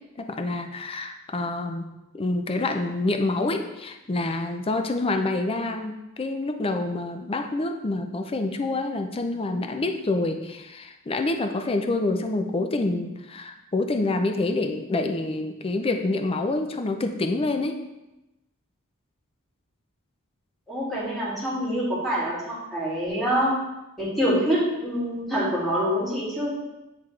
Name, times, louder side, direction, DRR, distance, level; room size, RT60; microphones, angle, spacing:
voice 1, 0.2-1.9 2.2-17.8, left 2 dB, 25° left, 5 dB, 0.5 m, -27 dB
voice 2, 20.7-23.5 24.0-26.5, equal, ahead, -7 dB, 2.1 m, -25 dB
9.5 x 3.5 x 3.2 m, 0.97 s
head